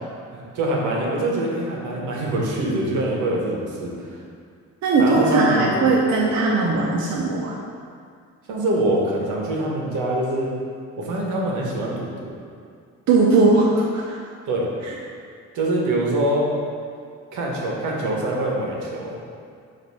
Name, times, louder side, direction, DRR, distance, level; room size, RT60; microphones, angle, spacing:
voice 1, 0.3-4.2 5.0-5.7 8.5-10.5 11.0-12.4 14.5-14.6 15.5-16.5 17.3-19.1, right 1 dB, 85° right, -2 dB, 1.1 m, -24 dB
voice 2, 4.8-7.5 13.1-14.2, right 3 dB, 65° right, -4 dB, 0.9 m, -19 dB
7.8 x 2.7 x 4.6 m, 2.2 s
cardioid pair, 90°, 30 cm